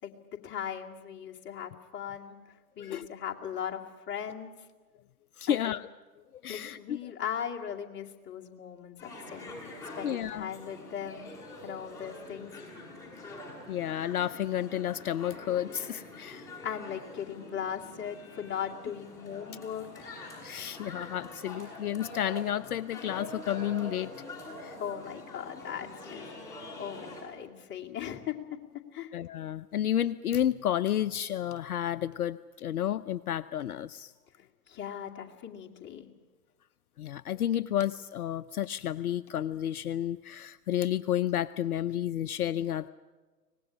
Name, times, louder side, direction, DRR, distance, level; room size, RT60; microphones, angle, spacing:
voice 1, 0.0-2.4 2.8-4.5 5.5-5.7 6.5-9.6 10.0-11.3 11.6-12.6 16.6-20.1 24.8-28.4 28.9-29.1 34.7-36.1, left 8 dB, 25° left, 0 dB, 2.3 m, -38 dB
voice 2, 5.4-5.9 6.4-7.0 10.0-10.5 13.7-16.5 20.4-24.1 24.6-24.8 29.1-34.1 37.0-42.9, left 11 dB, 65° left, 13 dB, 0.7 m, -31 dB
sound 1, 9.0-27.2, left 2 dB, 5° left, 7.9 m, -45 dB
24.5 x 19.0 x 10.0 m, 1.3 s
figure-of-eight pair, 110°, 47 cm